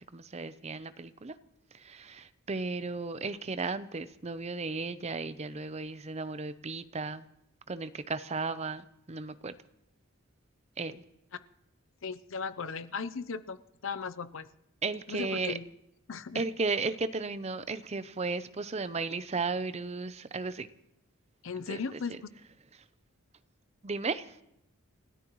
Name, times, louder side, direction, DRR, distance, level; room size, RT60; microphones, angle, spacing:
voice 1, 0.0-1.3 1.7-7.2 7.7-9.5 10.8-11.0 14.8-15.6 16.3-20.7 21.7-22.2 23.8-24.4, right 4 dB, 30° right, 13 dB, 0.6 m, -35 dB
voice 2, 12.0-14.5 15.1-15.6 16.1-16.4 21.4-22.3, left 5 dB, 65° left, 13 dB, 0.7 m, -37 dB
29.5 x 13.5 x 3.1 m, 0.83 s
head